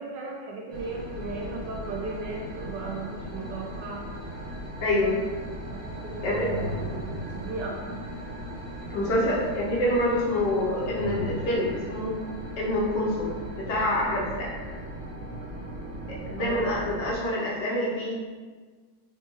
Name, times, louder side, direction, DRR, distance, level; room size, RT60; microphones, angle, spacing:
voice 1, 0.0-4.0 5.7-6.6 7.0-8.0 16.4-16.7, right 3 dB, 70° right, -1 dB, 1.1 m, -36 dB
sound 1, 0.7-17.1, right 1 dB, 35° right, 0.9 m, -38 dB
voice 2, 4.8-5.2 6.2-6.5 8.9-12.1 12.6-14.6 16.1-18.1, left 1 dB, 65° left, -4 dB, 1.3 m, -26 dB
sound 2, 5.4-8.2 10.2-12.1, left 1 dB, 30° left, 1.0 m, -38 dB
4.5 x 3.3 x 3.0 m, 1.4 s
omnidirectional pair, 2.2 m